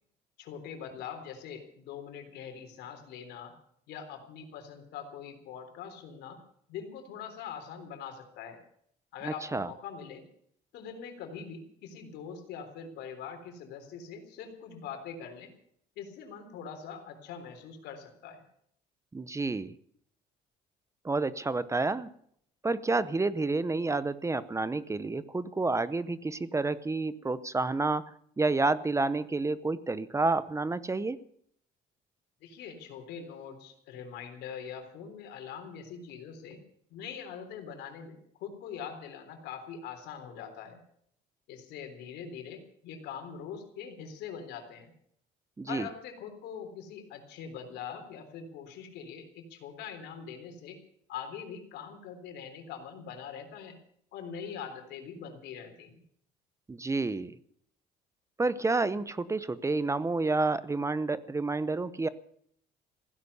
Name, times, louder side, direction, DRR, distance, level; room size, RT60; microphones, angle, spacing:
voice 1, 0.4-3.6 3.9-6.4 6.7-8.6 9.1-10.2 10.7-15.5 16.0-18.4 32.4-36.6 36.9-40.8 41.5-44.9 45.7-50.8 51.1-53.8 54.1-56.0, left 7 dB, 85° left, 6 dB, 3.6 m, -43 dB
voice 2, 9.2-9.7 19.1-19.8 21.0-22.1 22.6-28.0 28.4-31.2 45.6-45.9 56.7-57.4 58.4-62.1, right 3 dB, 15° right, 16 dB, 0.8 m, -29 dB
16.0 x 11.0 x 8.2 m, 0.67 s
cardioid pair, 110°, 17 cm